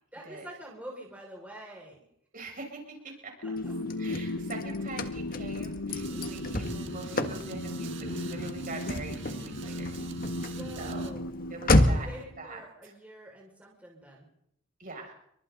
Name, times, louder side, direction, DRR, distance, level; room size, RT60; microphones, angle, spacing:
voice 1, 0.1-2.0 3.4-3.7 4.1-4.4 6.1-6.4 10.4-11.3 11.7-14.3, right 1 dB, 5° right, -3 dB, 5.8 m, -47 dB
voice 2, 2.3-3.3 4.0-10.0 10.8-11.1 11.5-12.1 12.4-12.9 14.8-15.2, right 2 dB, 40° right, 1 dB, 7.1 m, -43 dB
sound 1, 3.4-12.4, left 1 dB, 75° left, 1.2 m, -36 dB
Car / Slam, 3.6-12.2, left 1 dB, 40° left, 1.6 m, -31 dB
sound 2, 5.9-11.1, right 3 dB, 60° right, 1.7 m, -44 dB
29.0 x 24.5 x 4.1 m, 0.73 s
head